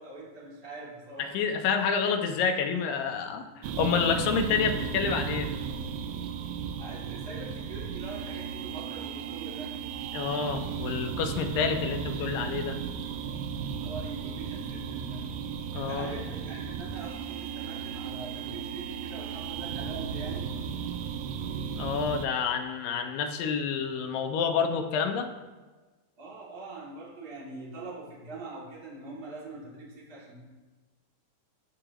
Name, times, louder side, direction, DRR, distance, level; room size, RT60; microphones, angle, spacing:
voice 1, 0.0-1.3 6.8-9.7 13.8-15.2 15.7-20.5 26.2-30.5, right 3 dB, 30° right, -7 dB, 2.8 m, -43 dB
voice 2, 1.3-5.5 10.1-12.8 15.7-16.2 21.8-25.3, left 6 dB, 80° left, 5 dB, 2.4 m, -28 dB
sound 1, 3.6-22.3, right 7 dB, 80° right, 2.2 m, -35 dB
13.5 x 7.9 x 3.0 m, 1.3 s
omnidirectional pair, 4.1 m